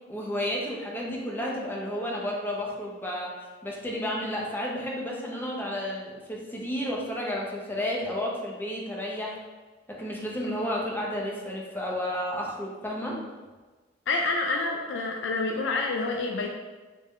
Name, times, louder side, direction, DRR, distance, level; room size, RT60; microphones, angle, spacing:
voice 1, 0.1-3.3 3.6-9.4 9.9-13.2, left 1 dB, 10° left, -3 dB, 0.6 m, -32 dB
voice 2, 14.1-16.5, left 3 dB, 70° left, 1 dB, 0.3 m, -28 dB
3.5 x 2.4 x 4.2 m, 1.3 s
head